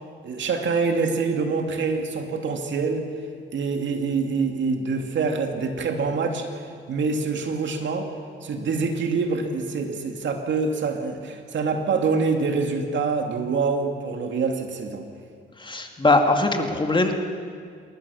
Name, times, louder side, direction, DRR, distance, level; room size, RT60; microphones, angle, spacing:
voice 1, 0.2-3.1 3.5-6.6 6.9-8.1 8.4-15.0, right 4 dB, 65° right, 4 dB, 2.5 m, -25 dB
voice 2, 15.6-17.1, left 2 dB, 25° left, 4 dB, 2.2 m, -21 dB
28.0 x 13.5 x 7.2 m, 2.1 s
cardioid pair, 75°, 21 cm